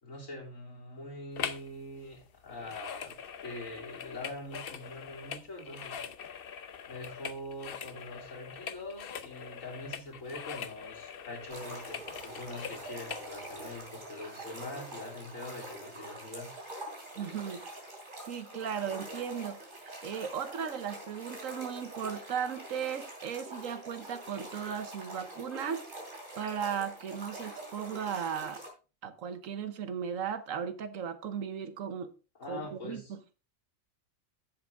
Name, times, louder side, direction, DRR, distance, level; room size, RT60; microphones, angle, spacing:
voice 1, 0.0-3.2 3.4-6.0 6.9-16.5 32.4-33.1, left 1 dB, 80° left, 3.6 m, -44 dB
sound 1, 1.4-1.7 2.0-13.3 13.8-13.9, left 7 dB, 50° left, 0.8 m, -42 dB
sound 2, 11.5-28.7, right 1 dB, 40° right, 3.4 m, -45 dB
voice 2, 17.2-17.6 18.2-25.8 26.4-28.6 29.0-32.1 32.5-33.2, right 7 dB, 75° right, 1.3 m, -36 dB
10.0 x 7.8 x 3.4 m
omnidirectional pair, 1.4 m